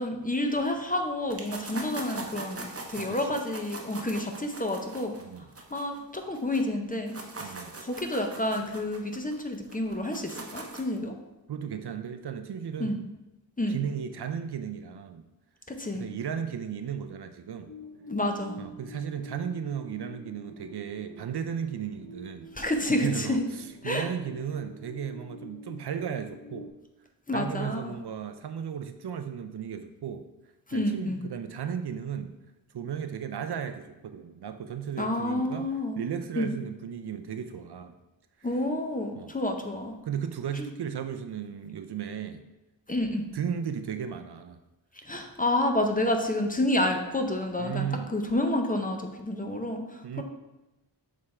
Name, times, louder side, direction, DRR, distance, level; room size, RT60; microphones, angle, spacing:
voice 1, 0.0-5.1 5.7-7.6 7.8-11.1 12.8-13.0 13.6-13.8 15.7-16.1 18.1-18.6 22.5-23.4 23.8-24.1 27.3-27.9 30.7-31.2 35.0-36.0 36.4-36.5 38.4-39.9 40.6-40.7 42.9-43.2 45.0-50.2, left 1 dB, 20° left, 4 dB, 0.6 m, -29 dB
sound 1, 1.3-6.6 6.9-11.0, right 3 dB, 30° right, 0.8 m, -41 dB
voice 2, 7.4-7.7 11.5-13.1 13.7-15.2 15.9-17.7 18.6-22.5 22.9-26.7 27.3-30.2 30.7-32.3 32.7-35.7 36.0-38.0 39.2-39.3 40.0-42.4 43.3-44.6 47.6-48.1 50.0-50.2, right 8 dB, 60° right, 8 dB, 0.5 m, -35 dB
sound 2, 17.7-26.7, equal, 60° left, 2.0 m, -47 dB
6.6 x 3.6 x 4.3 m, 0.98 s
wide cardioid pair, 105°, 45 cm